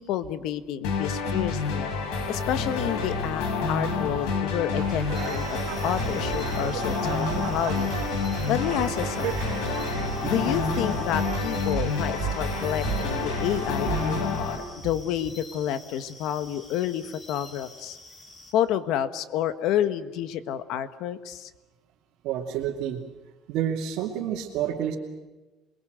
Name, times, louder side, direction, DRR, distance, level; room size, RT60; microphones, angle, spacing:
voice 1, 0.0-1.9 2.3-5.6 5.8-7.9 8.5-9.4 10.2-18.0 18.5-21.5, left 11 dB, 55° left, 12 dB, 1.4 m, -29 dB
sound 1, 0.8-14.6, left 4 dB, 90° left, 5.5 m, -28 dB
sound 2, 4.8-14.2, right 11 dB, 80° right, 1.9 m, -34 dB
sound 3, 5.1-18.5, left 2 dB, 20° left, 3.5 m, -48 dB
voice 2, 10.2-10.5 22.2-23.0 23.5-25.0, right 10 dB, 60° right, -2 dB, 2.5 m, -29 dB
27.5 x 22.0 x 8.0 m, 1.1 s
cardioid pair, 180°, 0 cm